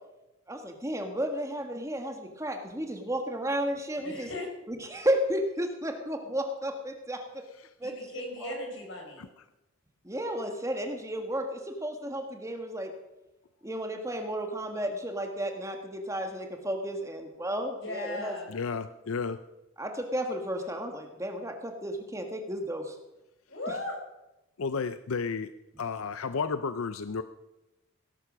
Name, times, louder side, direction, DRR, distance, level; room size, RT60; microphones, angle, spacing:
voice 1, 0.5-4.3 4.7-7.4 7.8-7.9 8.4-8.5 10.0-12.9 13.6-18.4 19.8-23.0 23.7-23.8, equal, 15° right, 4 dB, 1.5 m, -33 dB
voice 2, 4.0-4.5 7.8-9.2 17.8-18.5 23.5-23.9, left 1 dB, 60° left, 1 dB, 4.8 m, -37 dB
voice 3, 18.5-19.4 24.6-25.5 25.8-27.2, left 5 dB, 85° left, 12 dB, 0.6 m, -32 dB
17.5 x 11.5 x 6.1 m, 0.96 s
head